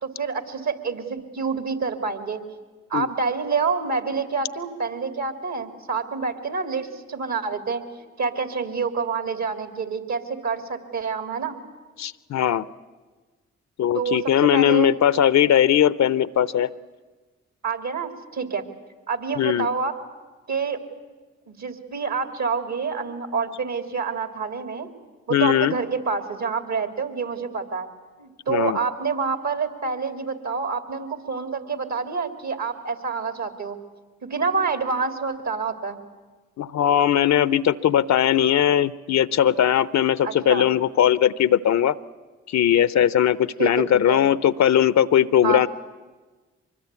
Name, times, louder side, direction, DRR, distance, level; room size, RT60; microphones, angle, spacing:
voice 1, 0.0-2.4 2.9-7.8 8.2-11.6 13.9-14.9 17.6-18.7 19.1-19.9 20.5-20.8 21.5-24.9 25.3-27.9 28.2-33.8 34.2-36.0 40.2-40.7 43.6-43.7 44.1-44.2 45.4-45.7, right 5 dB, 60° right, 7 dB, 2.9 m, -27 dB
voice 2, 12.0-12.6 13.8-16.7 19.4-19.7 25.3-25.7 28.5-28.8 36.6-42.0 42.5-45.7, left 10 dB, 60° left, 18 dB, 0.7 m, -19 dB
24.5 x 21.0 x 8.4 m, 1.3 s
hypercardioid pair, 40°, 31 cm